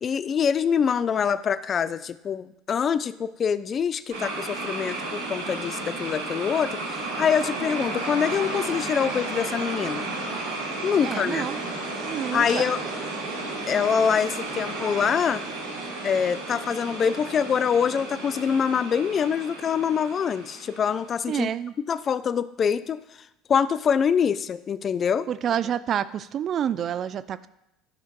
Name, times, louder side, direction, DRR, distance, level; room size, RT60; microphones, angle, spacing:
voice 1, 0.0-10.1 10.8-11.5 12.3-12.8 13.7-15.4 16.0-21.5 21.9-23.0 23.5-25.3, left 7 dB, 35° left, 14 dB, 0.4 m, -25 dB
sound 1, 4.1-21.1, right 2 dB, 75° right, 2.5 m, -33 dB
voice 2, 11.0-11.6 12.0-12.7 21.3-21.8 25.3-27.5, right 9 dB, 40° right, 15 dB, 0.3 m, -28 dB
11.5 x 5.8 x 2.4 m, 0.85 s
figure-of-eight pair, 65°, 0 cm